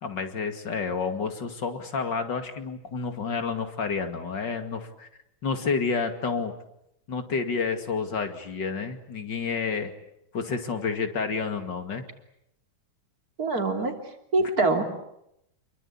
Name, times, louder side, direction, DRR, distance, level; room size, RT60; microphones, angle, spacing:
voice 1, 0.0-5.1 5.4-6.5 7.1-9.9 10.3-12.1, left 5 dB, 60° left, 7 dB, 3.0 m, -29 dB
voice 2, 13.4-14.0 14.3-15.0, right 3 dB, 45° right, 5 dB, 3.6 m, -24 dB
28.5 x 22.5 x 8.6 m, 0.80 s
omnidirectional pair, 2.2 m